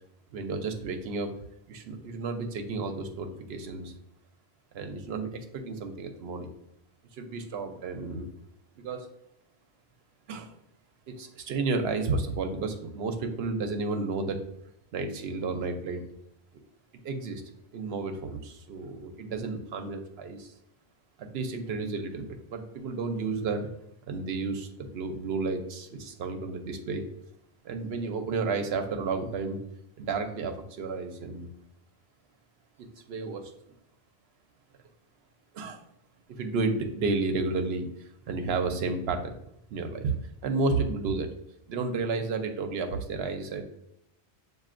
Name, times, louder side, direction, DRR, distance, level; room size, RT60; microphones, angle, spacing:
voice 1, 0.3-1.3 1.7-3.9 4.7-6.5 7.2-8.3 8.8-9.1 10.3-10.6 11.1-14.4 14.9-16.0 17.0-17.4 17.7-20.5 21.2-23.7 24.1-27.0 27.6-29.6 30.0-31.5 33.1-33.4 35.5-35.8 36.3-37.9 38.3-39.4 39.7-41.3 41.7-43.6, right 3 dB, 75° right, 6 dB, 0.9 m, -32 dB
7.3 x 2.6 x 2.5 m, 0.77 s
omnidirectional pair, 1.1 m